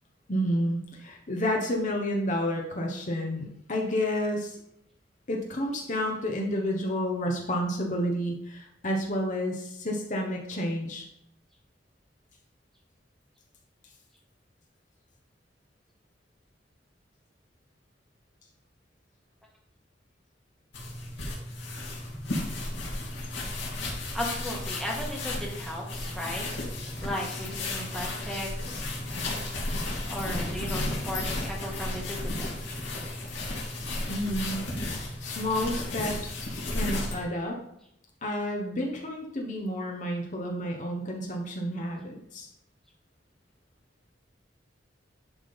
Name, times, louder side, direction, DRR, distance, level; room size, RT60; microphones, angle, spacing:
voice 1, 0.3-4.6 5.3-11.0 34.1-34.6 35.2-37.6 38.2-42.5, equal, 45° left, 1 dB, 1.1 m, -30 dB
sound 1, 20.7-37.2, left 2 dB, 90° left, 2.5 m, -34 dB
voice 2, 24.1-26.5 27.0-28.5 30.1-32.7, equal, ahead, -2 dB, 1.7 m, -36 dB
sound 2, 30.3-32.9, left 1 dB, 15° right, 1.4 m, -42 dB
10.5 x 3.7 x 5.2 m, 0.77 s
head